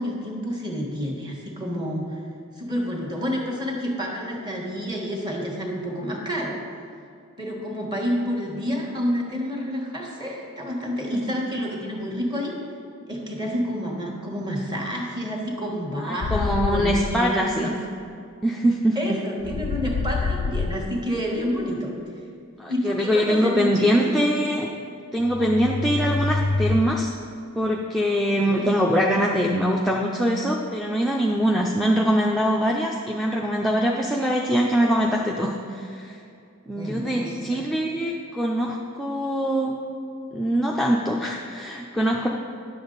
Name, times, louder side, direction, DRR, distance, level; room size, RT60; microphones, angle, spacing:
voice 1, 0.0-2.2 2.6-6.6 7.4-12.6 13.1-17.7 18.9-21.9 22.7-24.1 25.4-25.5 28.3-28.7 36.7-37.6, equal, 20° right, -1 dB, 1.3 m, -29 dB
voice 2, 16.0-17.7 18.4-19.2 22.6-24.7 25.1-27.1 27.6-36.2 36.7-39.8 40.3-42.3, equal, ahead, -3 dB, 0.4 m, -23 dB
sound 1, 16.2-17.2 19.4-21.0 25.2-26.8, left 3 dB, 70° left, 0.4 m, -26 dB
10.5 x 7.0 x 3.9 m, 2.5 s
head